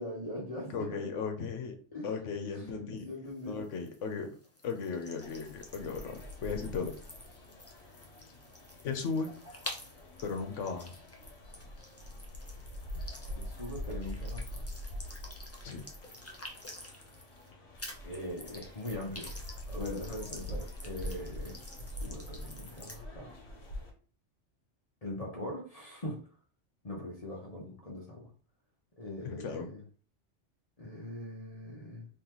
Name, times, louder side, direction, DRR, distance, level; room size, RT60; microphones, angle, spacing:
voice 1, 0.0-1.2 1.9-3.6 13.4-14.6 18.0-19.3 19.7-23.3 25.0-26.2 26.8-28.3 29.0-29.8 30.8-32.1, left 1 dB, 35° left, -3 dB, 0.9 m, -41 dB
voice 2, 0.7-1.8 2.0-3.1 3.4-4.3 4.6-6.9 8.8-9.3 10.2-10.9 15.6-15.8 29.2-29.7, left 5 dB, 85° left, 5 dB, 1.1 m, -36 dB
sound 1, 3.3-17.5 17.8-23.0, left 1 dB, 20° left, 0.4 m, -49 dB
sound 2, 5.2-23.9, left 1 dB, 65° left, 1.2 m, -44 dB
3.9 x 3.0 x 3.0 m, 0.42 s
omnidirectional pair, 1.2 m